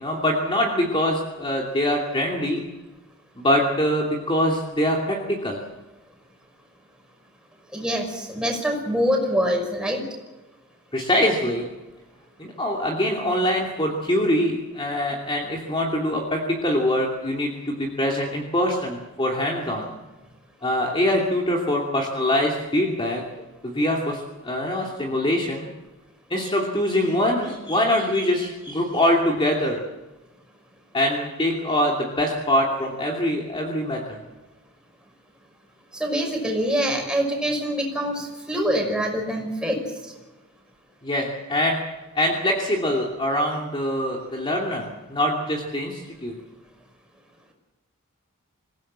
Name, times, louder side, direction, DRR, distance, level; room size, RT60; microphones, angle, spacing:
voice 1, 0.0-2.6 3.4-5.6 10.9-11.7 12.4-19.9 20.6-23.2 23.6-25.7 26.3-29.8 30.9-34.2 41.0-41.8 42.1-46.3, left 1 dB, 25° left, -1 dB, 2.8 m, -24 dB
voice 2, 7.7-10.0 35.9-39.8, equal, 5° right, 1 dB, 5.9 m, -25 dB
27.0 x 17.0 x 7.6 m, 1.1 s
head